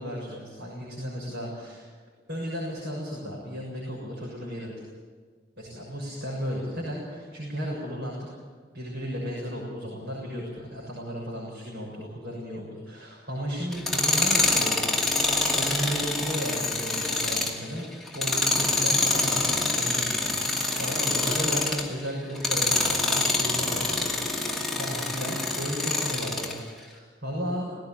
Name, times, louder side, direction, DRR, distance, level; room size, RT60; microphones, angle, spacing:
voice 1, 0.0-1.9 2.3-4.7 5.6-8.3 8.7-15.2 15.5-17.8 18.1-20.5 20.8-24.0 24.8-27.7, equal, 90° right, -4 dB, 6.7 m, -34 dB
Tools, 13.7-21.9 22.3-26.6, left 2 dB, ahead, 2.4 m, -26 dB
19.0 x 16.5 x 9.1 m, 1.5 s
head